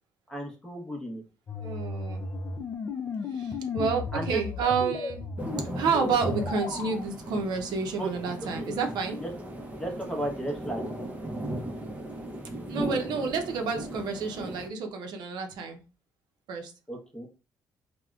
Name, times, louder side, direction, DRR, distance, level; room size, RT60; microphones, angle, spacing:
voice 1, 0.3-1.2 4.1-4.4 8.0-8.8 9.2-9.3 9.8-10.8 16.9-17.3, right 1 dB, 10° left, 1 dB, 0.8 m, -34 dB
sound 1, 1.5-7.0, left 3 dB, 40° left, 0.4 m, -34 dB
voice 2, 1.6-2.2 3.3-5.2 5.6-9.2 12.7-15.8 16.5-16.7, right 5 dB, 75° right, 4 dB, 0.6 m, -29 dB
sound 2, 5.4-14.7, right 1 dB, 20° right, 0.6 m, -37 dB
3.4 x 2.1 x 2.3 m, 0.33 s
cardioid pair, 105°, 7 cm